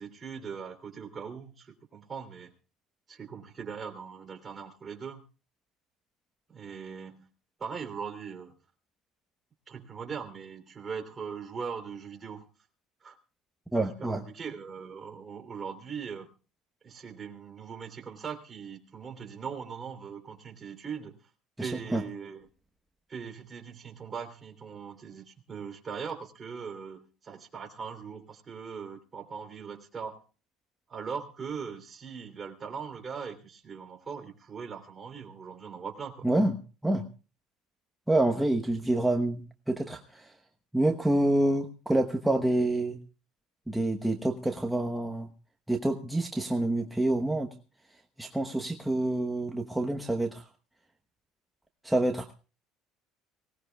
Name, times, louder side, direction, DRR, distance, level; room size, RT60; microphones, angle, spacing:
voice 1, 0.0-2.5 3.1-5.2 6.5-7.3 7.6-8.5 9.7-12.4 13.0-13.2 14.0-16.3 16.8-21.2 21.6-22.5 23.1-30.2 30.9-36.3, right 6 dB, 30° right, 4 dB, 3.1 m, -40 dB
voice 2, 13.7-14.2 21.6-22.0 36.2-37.1 38.1-40.3 40.7-43.0 43.7-45.3 45.7-47.5 48.2-50.4 51.8-52.3, right 1 dB, 5° right, 3 dB, 1.1 m, -27 dB
24.0 x 18.0 x 2.3 m, 0.35 s
cardioid pair, 115°, 0 cm